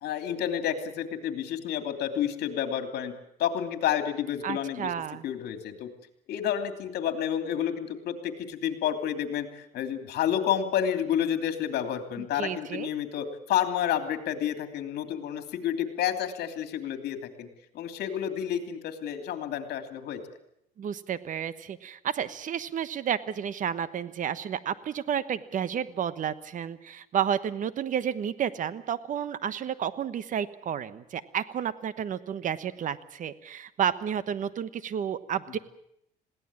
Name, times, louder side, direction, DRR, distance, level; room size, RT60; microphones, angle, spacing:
voice 1, 0.0-3.1 3.4-4.9 5.2-5.9 6.3-17.5 17.7-20.2, left 9 dB, 70° left, 7 dB, 2.9 m, -30 dB
voice 2, 4.4-5.2 12.3-12.9 20.8-35.6, right 8 dB, 50° right, 15 dB, 1.2 m, -31 dB
21.0 x 17.0 x 8.8 m, 0.77 s
cardioid pair, 110°, 17 cm